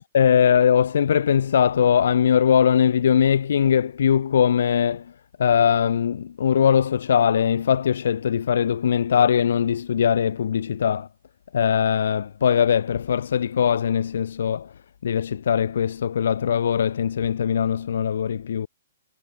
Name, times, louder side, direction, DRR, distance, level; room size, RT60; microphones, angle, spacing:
voice 1, 0.0-5.0 5.4-11.1 11.5-14.7 15.0-18.7, left 8 dB, 70° left, 1.0 m, -21 dB
hypercardioid pair, 140°, 0 cm